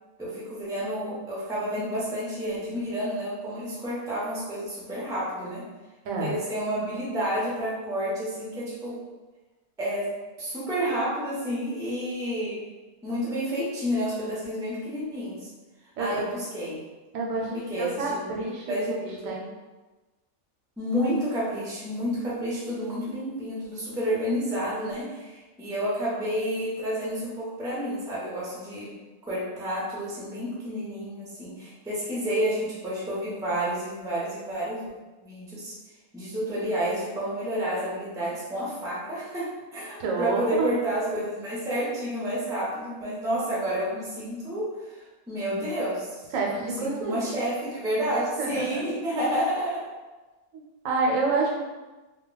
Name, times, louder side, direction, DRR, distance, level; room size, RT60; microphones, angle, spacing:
voice 1, 0.2-5.7 6.2-9.0 9.8-12.7 13.0-15.5 16.0-16.8 17.5-19.3 20.8-28.9 29.2-34.9 35.2-35.7 36.1-46.2 46.6-49.8, equal, 5° right, -7 dB, 0.4 m, -30 dB
voice 2, 6.0-6.4 16.0-16.2 17.1-19.0 19.2-19.5 40.0-40.7 46.3-47.3 48.4-48.8 50.5-51.6, right 3 dB, 80° right, -1 dB, 1.0 m, -28 dB
2.3 x 2.2 x 3.7 m, 1.2 s
omnidirectional pair, 1.4 m